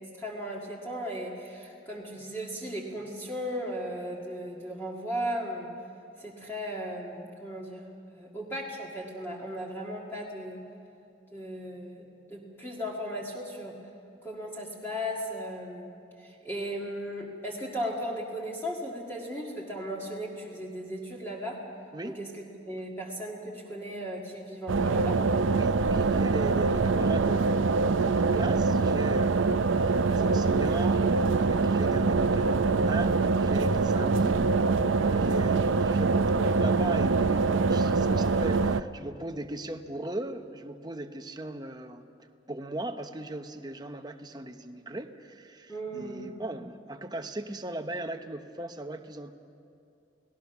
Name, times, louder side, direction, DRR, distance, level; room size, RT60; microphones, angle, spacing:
voice 1, 0.0-5.7 6.2-10.7 11.3-13.8 14.2-21.6 22.0-25.3 45.7-46.3, equal, 10° left, -3 dB, 2.0 m, -36 dB
sound 1, 24.7-38.8, right 4 dB, 80° right, 0.6 m, -24 dB
voice 2, 25.5-42.1 42.5-49.3, right 1 dB, 20° right, 7 dB, 0.9 m, -38 dB
30.0 x 18.5 x 6.1 m, 2.6 s
head